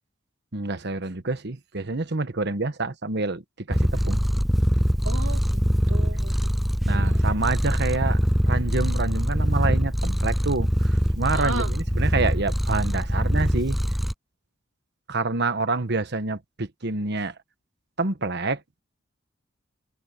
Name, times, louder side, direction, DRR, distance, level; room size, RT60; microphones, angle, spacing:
voice 1, 0.5-4.2 6.8-13.8 15.1-17.3 18.0-18.6, right 3 dB, 60° right, 1.3 m, -27 dB
Purr, 3.7-14.1, equal, ahead, 0.3 m, -23 dB
voice 2, 5.0-6.5 6.9-7.3 11.3-11.7, right 3 dB, 85° right, 2.3 m, -35 dB
head